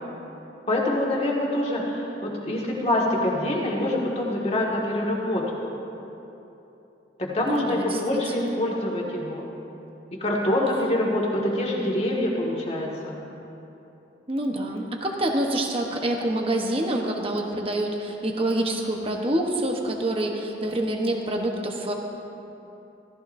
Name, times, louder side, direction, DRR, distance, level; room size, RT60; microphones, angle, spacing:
voice 1, 0.7-5.5 7.2-9.5 10.2-13.2, left 1 dB, 35° left, -3 dB, 1.8 m, -25 dB
voice 2, 7.5-8.0 8.3-8.6 14.3-21.9, right 1 dB, 30° right, 2 dB, 1.0 m, -26 dB
16.0 x 15.0 x 2.7 m, 3.0 s
head